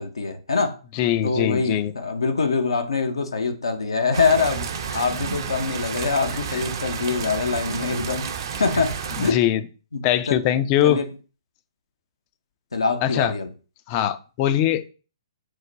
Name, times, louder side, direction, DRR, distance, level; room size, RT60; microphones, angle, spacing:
voice 1, 0.0-0.8 1.2-8.3 8.6-9.4 9.9-10.4 10.8-11.1 12.7-13.5, left 4 dB, 75° left, 0.6 m, -24 dB
voice 2, 0.9-1.9 9.2-9.6 10.0-11.0 13.0-13.3 13.9-14.9, left 11 dB, 30° left, 0.4 m, -22 dB
sound 1, 4.1-9.3, right 6 dB, 50° right, 0.6 m, -31 dB
4.7 x 2.1 x 3.8 m
figure-of-eight pair, 125°, 3 cm